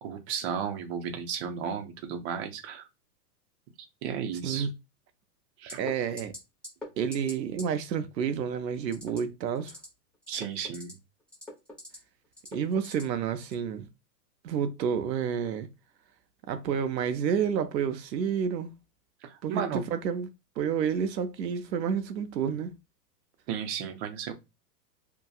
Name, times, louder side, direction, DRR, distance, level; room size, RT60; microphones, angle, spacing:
voice 1, 0.0-2.9 3.8-4.7 5.6-5.8 10.3-11.0 19.2-19.8 23.5-24.3, right 7 dB, 40° right, 0.7 m, -34 dB
sound 1, 5.7-5.9 6.2-6.4 6.6-6.9 7.1-7.3 7.6-7.7 8.9-9.2 9.6-9.9 10.2-10.9 11.3-12.0 12.4-13.0 13.4-13.6, left 1 dB, ahead, 0.7 m, -41 dB
voice 2, 5.8-6.4 7.0-9.8 12.5-13.9 14.4-15.7 16.5-18.7 19.4-20.3 20.6-22.7, right 7 dB, 90° right, 0.6 m, -29 dB
2.7 x 2.2 x 2.3 m
hypercardioid pair, 120°, 49 cm